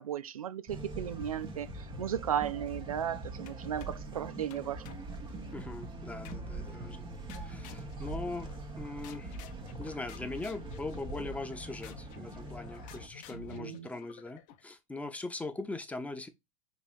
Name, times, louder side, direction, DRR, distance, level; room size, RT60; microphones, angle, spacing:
voice 1, 0.0-4.8 13.3-13.9, right 9 dB, 90° right, 0.4 m, -35 dB
sound 1, 0.7-13.1, right 2 dB, 25° right, 1.2 m, -43 dB
sound 2, 3.5-4.1 4.5-5.7 6.2-6.8 7.3-8.7 9.0-14.7, left 9 dB, 45° left, 0.6 m, -52 dB
voice 2, 5.5-7.1 7.3-8.5 8.8-9.4 9.8-16.3, left 2 dB, 10° left, 0.7 m, -41 dB
5.4 x 3.0 x 2.5 m
hypercardioid pair, 95°, 18 cm